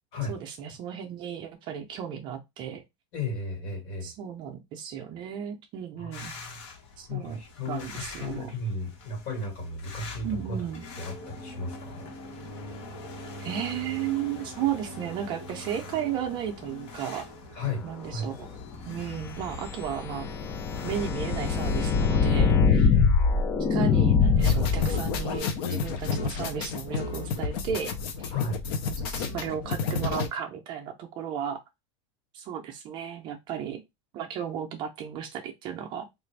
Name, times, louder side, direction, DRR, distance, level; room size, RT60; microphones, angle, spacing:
voice 1, 0.3-2.8 4.0-6.3 7.0-7.4 7.7-8.5 10.2-10.8 13.4-17.3 17.8-18.5 18.9-20.3 20.8-22.9 23.7-27.9 28.2-28.3 29.0-31.6 32.3-33.8 34.1-36.1, right 9 dB, 30° right, 0.5 m, -34 dB
voice 2, 3.1-4.1 6.0-6.6 7.1-10.7 11.0-12.1 17.5-17.8 18.1-18.3 22.9-23.1 28.3-28.6, left 2 dB, 40° left, 1.5 m, -34 dB
sound 1, 6.1-21.1, left 1 dB, 85° left, 1.4 m, -43 dB
sound 2, 19.0-25.4, left 5 dB, 20° left, 0.3 m, -23 dB
sound 3, 24.4-30.3, left 5 dB, 55° left, 0.6 m, -31 dB
3.3 x 2.5 x 3.2 m
supercardioid pair, 165°, 15 cm